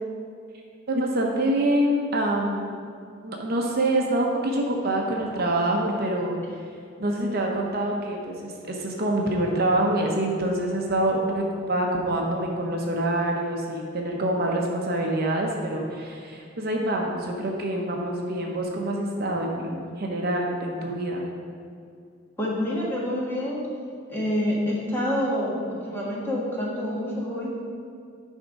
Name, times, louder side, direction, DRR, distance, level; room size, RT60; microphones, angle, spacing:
voice 1, 0.9-2.7 3.2-6.7 7.0-21.2, right 1 dB, 50° right, 0 dB, 0.8 m, -26 dB
voice 2, 22.4-23.6 24.1-27.6, equal, 10° left, -6 dB, 1.4 m, -27 dB
9.7 x 3.6 x 5.2 m, 2.3 s
head